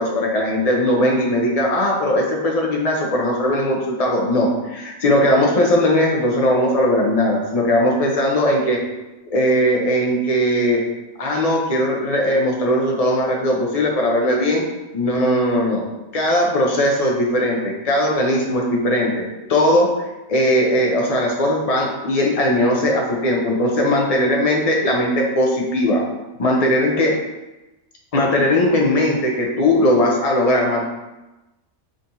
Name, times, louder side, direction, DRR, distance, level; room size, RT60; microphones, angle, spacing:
voice 1, 0.0-8.8 9.3-10.8 11.2-14.6 14.9-15.8 16.1-19.2 19.5-19.9 20.3-26.0 26.4-27.1 28.1-30.9, left 1 dB, 40° left, -1 dB, 0.6 m, -19 dB
4.3 x 3.8 x 2.6 m, 1.0 s
omnidirectional pair, 1.4 m